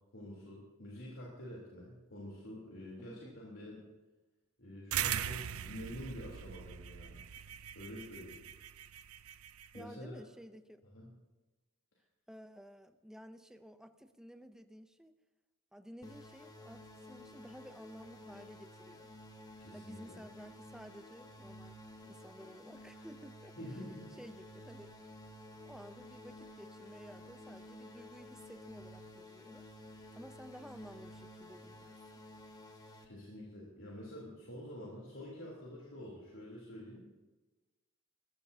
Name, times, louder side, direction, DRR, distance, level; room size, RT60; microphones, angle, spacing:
voice 1, 0.1-3.8 4.6-7.3 7.7-8.4 9.7-10.2 10.9-11.1 19.6-20.2 23.6-24.1 33.0-37.0, equal, 65° left, -4 dB, 3.4 m, -47 dB
voice 2, 3.0-3.4 9.7-10.8 12.3-15.1 15.7-19.1 19.7-21.8 22.0-23.8 24.2-24.9 25.6-29.7 30.1-32.2, equal, 5° right, 9 dB, 0.6 m, -53 dB
sound 1, 4.9-9.8, right 10 dB, 80° right, 0.5 m, -40 dB
sound 2, 16.0-33.1, left 1 dB, 15° left, 1.2 m, -53 dB
21.0 x 15.5 x 2.8 m, 1.2 s
head